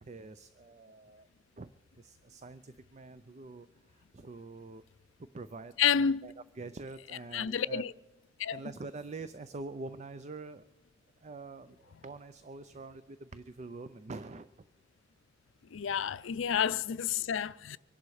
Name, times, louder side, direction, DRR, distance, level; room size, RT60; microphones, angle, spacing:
voice 1, 0.0-1.3 1.6-1.7 2.0-4.8 5.2-7.9 8.5-10.7 11.2-14.5 16.5-16.6, right 3 dB, 35° right, 0.5 m, -45 dB
voice 2, 5.8-6.2 7.3-7.9 8.4-8.6 15.7-17.8, left 8 dB, 75° left, 0.5 m, -30 dB
24.5 x 11.0 x 4.8 m
head